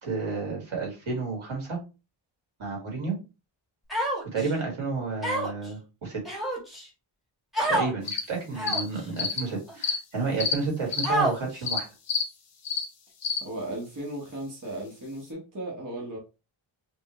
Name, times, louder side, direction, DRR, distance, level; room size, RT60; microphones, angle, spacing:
voice 1, 0.0-1.8 2.6-3.2 4.3-6.2 7.7-11.9, right 4 dB, 75° right, 2.0 m, -31 dB
Human voice, 3.9-4.5 5.2-5.7 6.2-6.8 7.5-7.9 8.5-9.0 9.7-9.8 11.0-11.6, right 1 dB, ahead, 1.5 m, -27 dB
sound 1, 8.1-8.2 8.7-8.8 9.2-9.4 9.8-10.0 10.4-10.5 10.9-11.1 11.7-11.8 12.1-12.2 12.6-12.8 13.2-13.4, left 5 dB, 80° left, 1.0 m, -27 dB
voice 2, 13.4-16.2, right 1 dB, 40° right, 1.2 m, -36 dB
4.5 x 2.4 x 3.1 m
wide cardioid pair, 140°, 49 cm